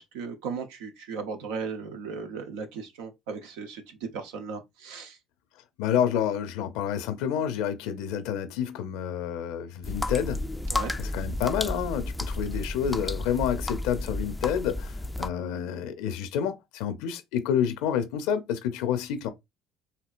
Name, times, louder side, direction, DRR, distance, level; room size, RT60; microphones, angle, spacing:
voice 1, 0.0-5.2 10.7-10.9, right 5 dB, 80° right, 0.8 m, -36 dB
voice 2, 5.8-10.4 11.0-19.3, left 9 dB, 80° left, 0.5 m, -29 dB
sound 1, 9.8-15.3, left 2 dB, 10° left, 0.3 m, -32 dB
4.4 x 2.8 x 2.4 m
hypercardioid pair, 65°, 0 cm